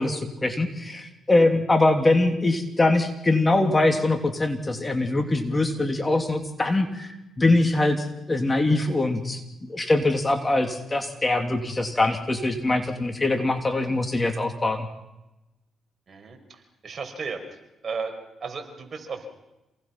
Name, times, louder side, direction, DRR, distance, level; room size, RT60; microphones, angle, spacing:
voice 1, 0.0-9.4 9.7-14.9, left 2 dB, 25° left, 5 dB, 2.8 m, -23 dB
voice 2, 16.1-17.4 17.8-18.1 18.4-19.3, right 5 dB, 45° right, 4 dB, 5.3 m, -34 dB
28.0 x 19.0 x 6.0 m, 0.95 s
cardioid pair, 70°, 0 cm